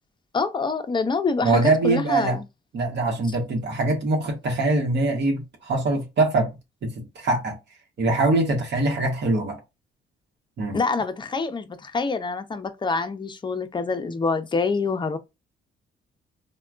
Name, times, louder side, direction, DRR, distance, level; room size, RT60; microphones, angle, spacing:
voice 1, 0.3-2.4 10.7-15.2, left 4 dB, 25° left, 0.6 m, -26 dB
voice 2, 1.4-2.4 2.7-6.5 6.8-7.6 8.0-9.6 10.6-10.8, right 2 dB, 60° right, 1.0 m, -23 dB
3.4 x 2.2 x 2.4 m
cardioid pair, 90°, 20 cm